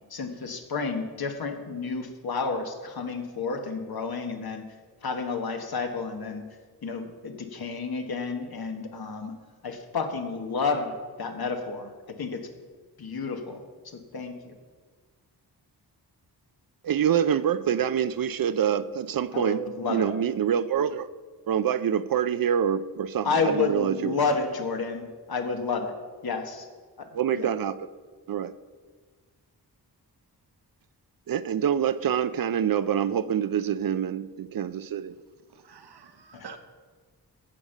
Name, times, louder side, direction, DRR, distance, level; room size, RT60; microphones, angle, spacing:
voice 1, 0.1-4.6 5.0-6.4 6.8-9.3 9.6-12.5 13.0-14.5 19.3-20.1 23.2-26.0 26.2-26.7 27.0-27.1 27.3-27.5 36.3-36.6, left 4 dB, 65° left, 5 dB, 1.5 m, -31 dB
voice 2, 16.8-19.6 19.9-21.1 21.5-24.2 27.1-27.8 28.3-28.5 31.3-35.1, right 9 dB, 60° right, 15 dB, 0.5 m, -26 dB
voice 3, 35.5-36.6, right 6 dB, 80° right, 8 dB, 1.1 m, -47 dB
14.5 x 5.3 x 7.2 m, 1.5 s
wide cardioid pair, 125°, 39 cm